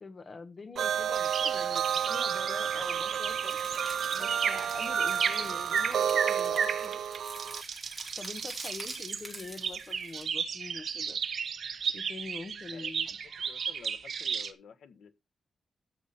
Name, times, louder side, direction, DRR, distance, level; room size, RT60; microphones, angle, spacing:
voice 1, 0.0-3.6 4.1-7.0 8.2-11.2 11.9-13.2, left 4 dB, 30° left, 1.3 m, -45 dB
sound 1, 0.8-7.6, right 9 dB, 85° right, 0.5 m, -31 dB
sound 2, 1.1-14.5, right 6 dB, 55° right, 1.2 m, -34 dB
sound 3, 3.3-10.2, right 1 dB, ahead, 3.8 m, -47 dB
voice 2, 13.4-15.2, left 7 dB, 80° left, 1.4 m, -51 dB
14.0 x 5.2 x 4.2 m
wide cardioid pair, 160°, 0 cm